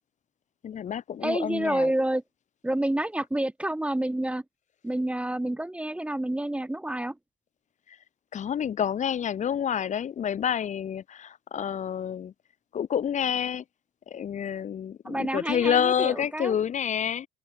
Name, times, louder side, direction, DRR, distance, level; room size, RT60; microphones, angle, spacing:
voice 1, 0.6-1.9 7.9-8.0 8.3-12.3 12.7-13.6 14.1-17.3, left 8 dB, 35° left, 1.5 m, -28 dB
voice 2, 1.2-2.2 2.6-4.4 4.8-7.2 15.0-16.5, right 1 dB, 5° right, 1.0 m, -28 dB
open air
cardioid pair, 135°, 21 cm